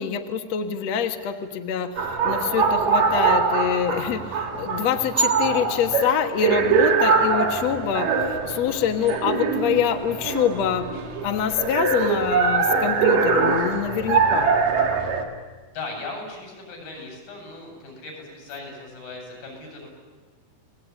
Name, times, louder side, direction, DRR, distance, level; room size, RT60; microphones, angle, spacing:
voice 1, 0.0-10.9 11.2-14.6, left 8 dB, 60° left, 6 dB, 2.3 m, -25 dB
sound 1, 2.0-15.2, right 5 dB, 75° right, 4.3 m, -23 dB
voice 2, 15.7-19.9, left 3 dB, 85° left, 2 dB, 9.4 m, -38 dB
29.0 x 20.0 x 9.8 m, 1.4 s
omnidirectional pair, 4.0 m